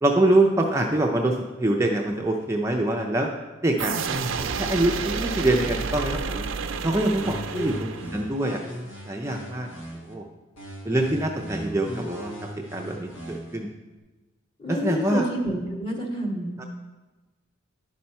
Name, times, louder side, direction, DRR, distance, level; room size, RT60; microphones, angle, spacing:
voice 1, 0.0-3.3 3.6-6.5 6.8-8.6 9.1-9.7 10.1-10.3 10.9-12.3 12.7-13.7 14.7-15.3 16.6-16.7, right 1 dB, 15° right, 1 dB, 0.5 m, -24 dB
sound 1, 3.8-8.4, right 5 dB, 85° right, 0.5 m, -30 dB
sound 2, 7.1-10.1 10.6-13.6, right 1 dB, 85° left, 1.6 m, -38 dB
voice 2, 14.6-16.6, equal, 25° left, 0 dB, 1.4 m, -29 dB
11.0 x 5.7 x 4.2 m, 1.2 s
head